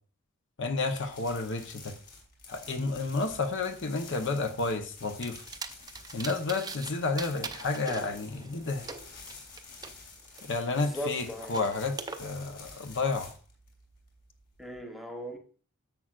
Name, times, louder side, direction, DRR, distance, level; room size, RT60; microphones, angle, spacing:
voice 1, 0.6-1.9 2.5-5.4 6.1-8.9 10.4-13.3, left 3 dB, 55° left, 0.9 m, -31 dB
sound 1, 0.8-14.8, left 3 dB, 40° left, 3.0 m, -50 dB
sound 2, 5.2-6.9 7.2-9.9 10.4-12.2, right 4 dB, 20° right, 0.6 m, -42 dB
voice 2, 10.8-11.5 14.6-15.4, left 1 dB, ahead, 1.1 m, -38 dB
10.5 x 7.5 x 2.4 m
head